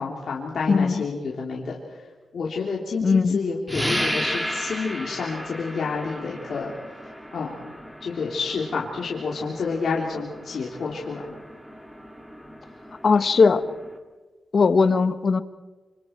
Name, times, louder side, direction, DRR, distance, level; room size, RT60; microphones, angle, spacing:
voice 1, 0.0-1.8 2.3-6.7 7.3-11.3, left 4 dB, 70° left, -3 dB, 3.2 m, -29 dB
voice 2, 0.7-1.0 3.0-3.4 13.0-13.6 14.5-15.4, left 4 dB, 55° left, 12 dB, 1.2 m, -19 dB
sound 1, 3.7-14.0, equal, 10° right, 2.8 m, -34 dB
27.5 x 26.5 x 4.6 m, 1.3 s
cardioid pair, 85°, 0 cm